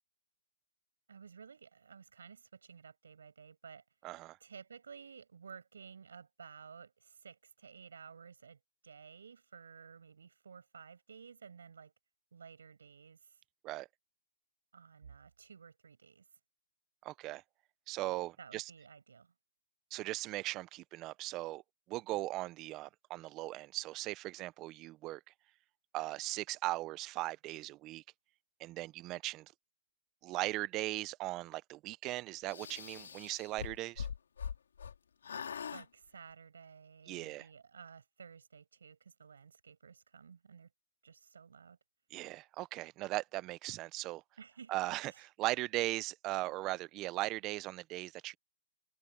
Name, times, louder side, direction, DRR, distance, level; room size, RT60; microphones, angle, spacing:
voice 1, 1.1-3.8 4.4-11.9 12.3-13.4 14.7-16.3 18.4-19.3 35.7-40.7 41.0-41.8 44.4-44.7 45.1-45.2, right 6 dB, 70° right, 7.8 m, -54 dB
voice 2, 4.0-4.4 13.6-13.9 17.0-17.4 17.9-18.7 19.9-21.6 21.9-25.2 25.9-28.0 28.6-29.5 30.2-34.1 37.1-37.5 42.1-44.2 44.7-48.4, right 18 dB, 20° right, 0.5 m, -38 dB
sound 1, 32.5-35.0 35.2-35.9, left 7 dB, 65° left, 2.5 m, -42 dB
hypercardioid pair, 165°, 0 cm